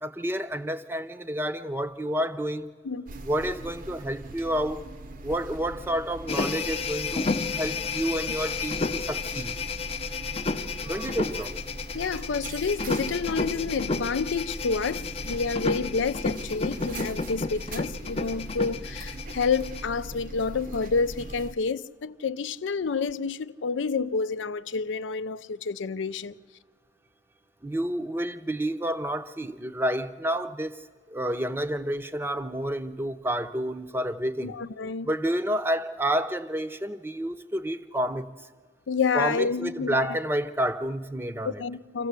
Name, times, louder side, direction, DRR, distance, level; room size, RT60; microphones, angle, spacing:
voice 1, 0.0-2.7 3.2-4.9 5.2-9.5 10.8-11.5 27.6-30.8 31.1-34.5 35.0-38.3 39.1-41.6, right 1 dB, 10° right, 0.6 m, -29 dB
sound 1, 3.1-21.5, right 1 dB, 45° right, 0.7 m, -40 dB
sound 2, 6.3-19.8, left 4 dB, 30° left, 0.5 m, -31 dB
voice 2, 11.9-26.3 34.4-35.1 38.9-40.2 41.4-42.1, left 5 dB, 90° left, 0.5 m, -29 dB
26.0 x 15.0 x 8.1 m
head